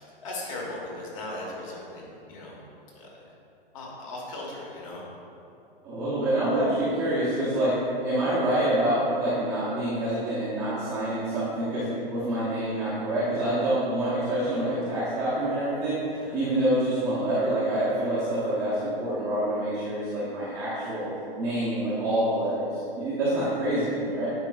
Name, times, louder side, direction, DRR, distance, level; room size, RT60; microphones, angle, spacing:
voice 1, 0.0-2.6 2.9-3.3 3.7-5.0 16.1-16.4, left 2 dB, 35° left, -3 dB, 1.2 m, -38 dB
voice 2, 5.8-16.0 16.3-21.1 21.3-24.3, right 1 dB, 10° right, -12 dB, 0.6 m, -26 dB
9.4 x 5.1 x 2.3 m, 2.7 s
hypercardioid pair, 160°, 31 cm